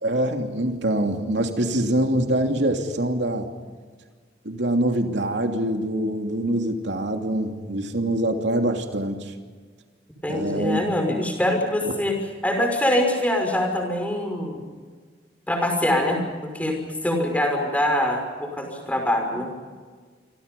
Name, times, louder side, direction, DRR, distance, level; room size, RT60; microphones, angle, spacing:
voice 1, 0.0-3.5 4.4-9.3 10.3-10.8 19.3-19.4, right 1 dB, 85° right, 3 dB, 2.9 m, -24 dB
voice 2, 10.2-12.2 12.4-14.6 15.5-16.8 17.0-19.5, left 1 dB, 10° left, 3 dB, 5.8 m, -24 dB
29.5 x 25.5 x 5.4 m, 1.5 s
head